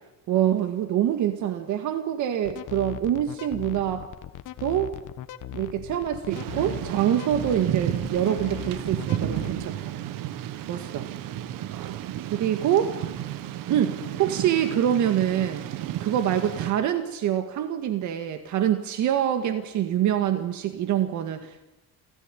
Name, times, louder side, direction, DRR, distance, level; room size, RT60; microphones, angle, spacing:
voice 1, 0.3-4.1 4.6-4.9 5.5-9.9 10.7-11.0 12.3-13.0 13.7-15.6 16.0-21.6, right 10 dB, 65° right, 8 dB, 1.9 m, -25 dB
sound 1, 2.4-9.7, left 12 dB, 70° left, 1.4 m, -39 dB
Thunder / Rain, 6.3-16.7, right 12 dB, 90° right, 1.4 m, -32 dB
29.0 x 16.5 x 9.9 m, 0.99 s
cardioid pair, 175°, 32 cm